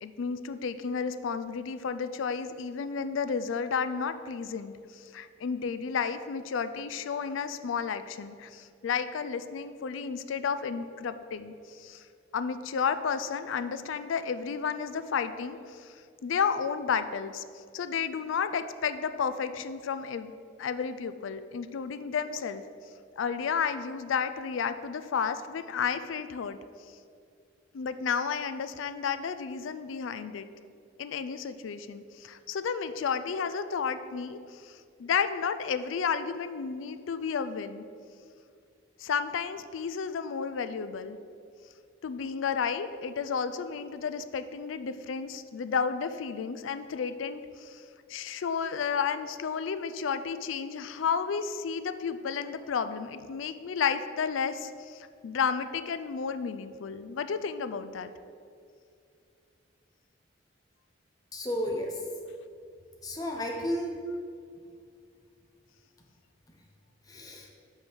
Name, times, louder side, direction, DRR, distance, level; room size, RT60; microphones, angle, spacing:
voice 1, 0.0-12.0 12.3-15.9 16.2-17.4 17.7-20.3 20.6-22.6 23.2-26.6 27.7-30.5 31.0-37.8 39.0-41.2 42.0-47.8 48.1-58.1, left 6 dB, 75° left, 11 dB, 0.4 m, -32 dB
voice 2, 61.3-62.0 63.0-63.9 67.1-67.5, equal, 20° left, 1 dB, 0.8 m, -32 dB
5.4 x 5.4 x 6.2 m, 2.3 s
head